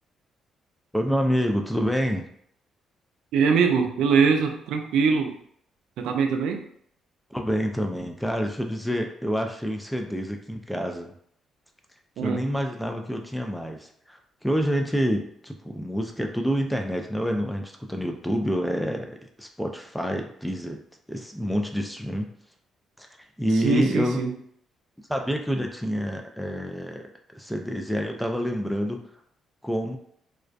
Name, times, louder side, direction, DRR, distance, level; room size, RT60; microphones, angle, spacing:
voice 1, 0.9-2.3 7.3-11.1 12.2-19.1 19.4-20.8 21.1-22.3 23.0-23.1 23.4-24.2 25.1-27.1 27.3-29.0 29.6-30.0, equal, 5° left, 3 dB, 0.3 m, -27 dB
voice 2, 3.3-5.4 6.0-6.6 12.2-12.4 23.6-24.3, right 5 dB, 85° right, 4 dB, 0.3 m, -22 dB
2.3 x 2.1 x 2.5 m, 0.65 s
cardioid pair, 100°, 0 cm